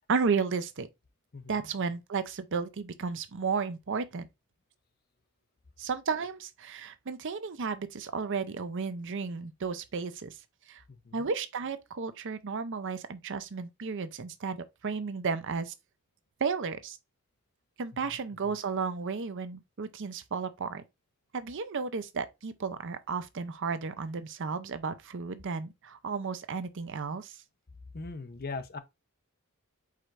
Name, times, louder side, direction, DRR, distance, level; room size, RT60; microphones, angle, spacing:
voice 1, 0.1-0.9 1.5-4.3 5.8-10.4 10.7-10.8 11.1-15.7 16.4-17.0 17.8-20.8 21.3-27.4, right 5 dB, 60° right, 0.6 m, -33 dB
voice 2, 1.3-1.7 10.9-11.3 18.0-18.2 27.9-28.8, left 3 dB, 45° left, 0.8 m, -40 dB
4.9 x 4.4 x 2.4 m
head